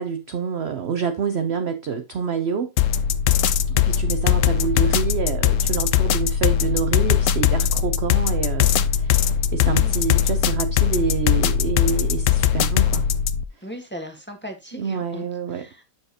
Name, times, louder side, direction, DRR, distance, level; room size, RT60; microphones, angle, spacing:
voice 1, 0.0-2.7 3.7-13.1 14.8-15.7, right 6 dB, 60° right, 0.7 m, -27 dB
sound 1, 2.8-13.4, left 9 dB, 75° left, 0.7 m, -20 dB
voice 2, 13.6-15.8, equal, 5° left, 1.2 m, -38 dB
7.5 x 6.7 x 2.8 m
omnidirectional pair, 1.9 m